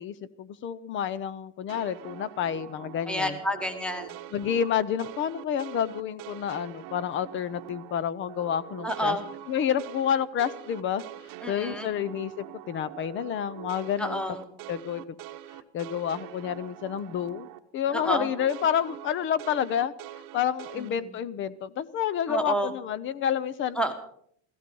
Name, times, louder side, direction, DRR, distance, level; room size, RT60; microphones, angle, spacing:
voice 1, 0.0-3.4 4.3-9.2 9.5-11.0 11.5-14.2 14.7-15.0 15.7-17.5 17.7-19.9 20.3-23.8, left 9 dB, 25° left, 18 dB, 0.6 m, -29 dB
sound 1, 1.7-8.0 8.3-17.6 17.9-20.9, right 13 dB, 45° right, 1.0 m, -44 dB
voice 2, 3.1-4.1 8.8-9.3 11.4-11.9 14.0-14.4 17.9-18.3 20.8-21.1 22.3-22.7 23.8-23.9, equal, ahead, 9 dB, 1.4 m, -29 dB
16.5 x 15.0 x 5.4 m, 0.65 s
cardioid pair, 155°, 45 cm